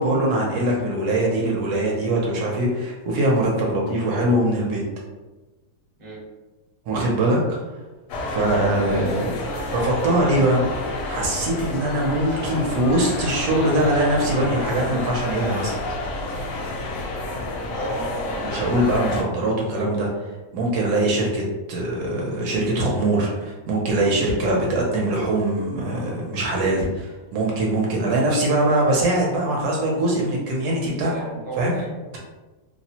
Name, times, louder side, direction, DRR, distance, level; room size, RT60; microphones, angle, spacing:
voice 1, 0.0-4.8 6.9-7.6 8.3-9.4 9.7-10.6 11.0-15.7 18.4-20.1 20.5-21.4 21.7-31.1 31.6-31.7, right 1 dB, 70° right, -2 dB, 1.0 m, -22 dB
sound 1, 8.1-19.2, left 2 dB, 70° left, 0.8 m, -29 dB
voice 2, 17.8-18.4 31.0-32.0, right 1 dB, 35° right, -6 dB, 0.5 m, -33 dB
2.9 x 2.0 x 2.7 m, 1.2 s
omnidirectional pair, 1.9 m